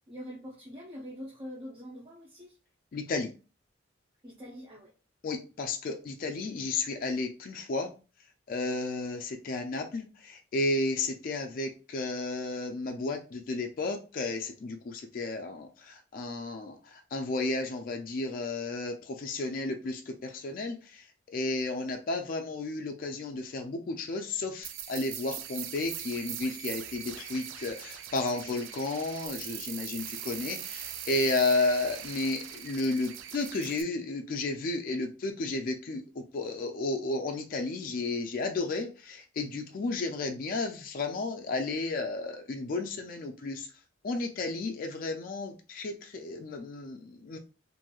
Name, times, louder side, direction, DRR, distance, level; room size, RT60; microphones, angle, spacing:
voice 1, 0.1-2.6 4.2-4.9 28.3-28.7, equal, 25° right, 0.6 m, -44 dB
voice 2, 2.9-3.3 5.2-7.9 8.5-21.0 21.3-36.0 36.3-43.7 44.0-47.4, left 2 dB, 45° left, 0.3 m, -32 dB
sound 1, 24.6-33.8, right 10 dB, 90° right, 0.4 m, -41 dB
2.9 x 2.6 x 2.3 m
head